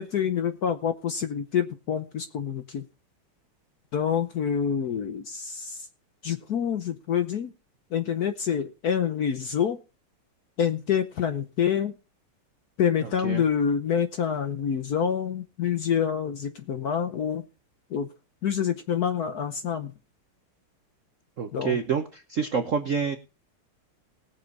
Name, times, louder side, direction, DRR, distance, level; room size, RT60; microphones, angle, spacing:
voice 1, 0.0-2.8 3.9-5.9 6.2-7.5 7.9-9.8 10.6-11.9 12.8-17.4 17.9-18.1 18.4-19.9 21.5-21.8, left 8 dB, 60° left, 9 dB, 1.1 m, -27 dB
voice 2, 13.0-13.4 21.4-23.2, right 6 dB, 65° right, 7 dB, 0.8 m, -28 dB
19.5 x 7.0 x 4.0 m, 0.31 s
omnidirectional pair, 2.4 m